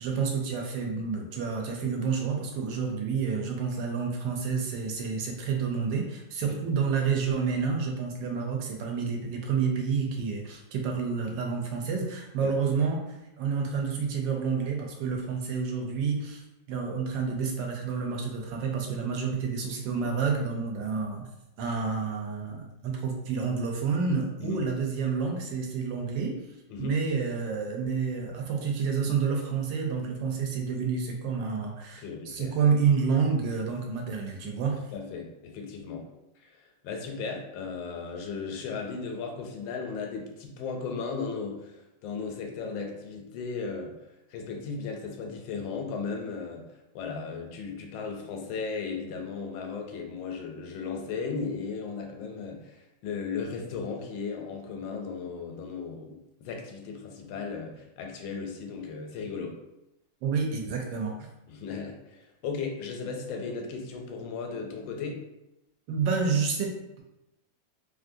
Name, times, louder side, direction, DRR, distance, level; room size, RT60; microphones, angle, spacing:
voice 1, 0.0-13.0 13.4-21.2 21.6-26.4 26.8-34.8 60.2-61.1 65.9-67.0, right 5 dB, 80° right, 1 dB, 1.3 m, -29 dB
voice 2, 32.0-32.6 34.9-36.1 36.4-43.9 44.3-59.6 61.5-65.2, left 5 dB, 85° left, 2 dB, 1.3 m, -36 dB
3.2 x 2.5 x 2.5 m, 0.90 s
omnidirectional pair, 2.0 m